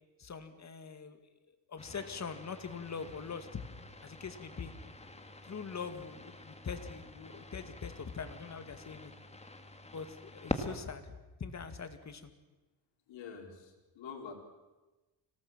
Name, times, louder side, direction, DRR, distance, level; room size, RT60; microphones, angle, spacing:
voice 1, 0.2-1.2 1.7-3.6 4.0-4.7 5.4-9.1 9.9-12.3, left 5 dB, 35° left, 9 dB, 2.3 m, -43 dB
sound 1, 1.8-10.8, left 2 dB, 15° left, 2.2 m, -45 dB
voice 2, 13.1-14.3, left 6 dB, 75° left, 2 dB, 4.6 m, -46 dB
25.0 x 18.0 x 7.4 m, 1.1 s
cardioid pair, 95°, 45 cm